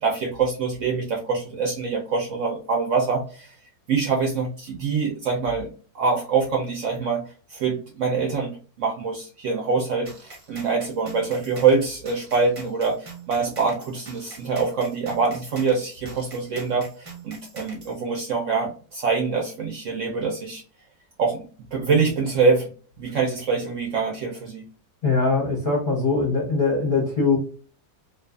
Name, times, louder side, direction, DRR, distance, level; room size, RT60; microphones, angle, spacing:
voice 1, 0.0-3.6 3.9-5.7 5.9-20.6 21.2-22.7 23.0-24.6, right 5 dB, 70° right, 0 dB, 0.7 m, -25 dB
sound 1, 10.1-18.0, right 2 dB, 45° right, 0.4 m, -43 dB
voice 2, 25.0-27.4, left 4 dB, 45° left, -2 dB, 0.7 m, -22 dB
2.6 x 2.3 x 2.3 m, 0.40 s
omnidirectional pair, 1.7 m